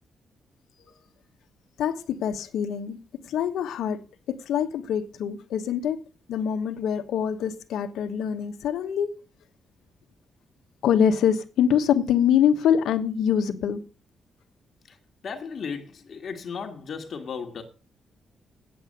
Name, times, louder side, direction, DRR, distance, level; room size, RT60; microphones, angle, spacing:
voice 1, 1.8-3.0 3.3-6.0 6.3-9.1 10.8-13.8, left 8 dB, 85° left, 1.1 m, -24 dB
voice 2, 15.2-17.6, left 6 dB, 55° left, 1.7 m, -36 dB
8.7 x 8.4 x 6.6 m
cardioid pair, 100°, 0 cm